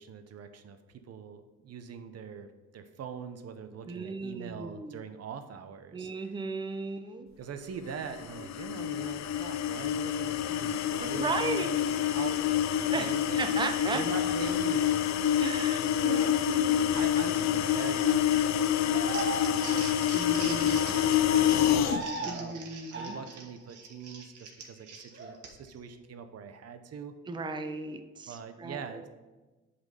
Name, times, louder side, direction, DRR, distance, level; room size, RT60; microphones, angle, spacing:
voice 1, 0.0-6.3 7.4-11.8 12.1-13.5 13.9-15.4 15.8-16.3 16.9-20.0 20.4-22.6 22.9-27.1 28.3-29.1, right 6 dB, 55° right, 9 dB, 0.7 m, -43 dB
voice 2, 3.9-5.0 5.9-7.3 11.0-12.1 12.9-13.1 13.4-14.0 15.4-16.9 17.4-17.6 20.1-21.0 22.2-23.2 27.3-29.1, right 3 dB, 15° right, 6 dB, 0.6 m, -36 dB
sound 1, 8.1-22.0, left 10 dB, 60° left, 0.5 m, -27 dB
sound 2, 14.2-14.7 17.6-18.0 18.9-20.0 21.6-22.6 22.9-23.5 25.1-25.4, right 3 dB, 40° right, 1.2 m, -38 dB
Crumpling crinkling, 18.9-25.8, right 4 dB, 75° right, 1.4 m, -44 dB
7.7 x 4.2 x 5.4 m, 1.2 s
cardioid pair, 90°, 30 cm